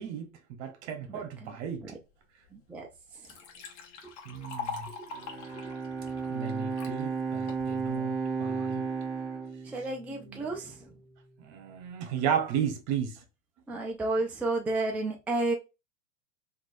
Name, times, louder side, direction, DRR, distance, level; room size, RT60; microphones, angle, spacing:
voice 1, 0.0-1.8 4.3-4.9 6.3-8.1 8.4-8.8 10.1-10.5 11.4-13.2 13.7-13.8, right 8 dB, 55° right, 1.1 m, -34 dB
voice 2, 1.1-1.5 2.5-2.9 8.4-8.5 9.7-10.8 13.7-15.5, right 2 dB, 5° right, 0.4 m, -31 dB
Liquid, 2.4-2.5 2.9-6.9 7.5-8.0, left 5 dB, 60° left, 1.0 m, -42 dB
Bowed string instrument, 5.1-10.5, right 5 dB, 30° right, 0.8 m, -34 dB
3.5 x 2.6 x 2.5 m
hypercardioid pair, 110°, 40 cm